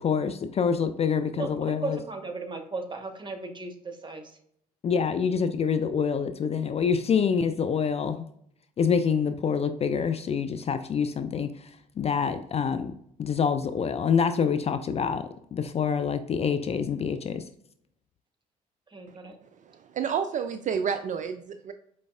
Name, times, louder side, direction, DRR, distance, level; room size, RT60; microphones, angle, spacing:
voice 1, 0.0-2.0 4.8-8.2 8.8-11.7 12.0-12.9 13.2-17.4, left 6 dB, 35° left, 10 dB, 0.4 m, -26 dB
voice 2, 1.8-4.3 18.9-19.3, right 3 dB, 25° right, 5 dB, 1.0 m, -36 dB
voice 3, 19.1-21.7, right 7 dB, 40° right, 7 dB, 0.4 m, -31 dB
5.1 x 3.1 x 2.3 m, 0.69 s
hypercardioid pair, 50°, 19 cm